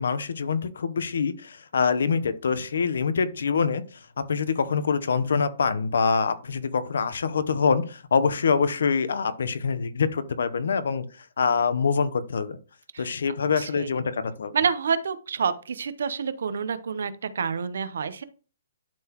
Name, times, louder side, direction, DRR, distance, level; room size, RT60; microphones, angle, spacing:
voice 1, 0.0-12.6 13.0-14.5, left 5 dB, 70° left, 14 dB, 0.8 m, -25 dB
voice 2, 13.6-13.9 14.5-18.2, right 6 dB, 60° right, 14 dB, 0.7 m, -28 dB
11.5 x 3.9 x 2.9 m, 0.37 s
hypercardioid pair, 180°, 0 cm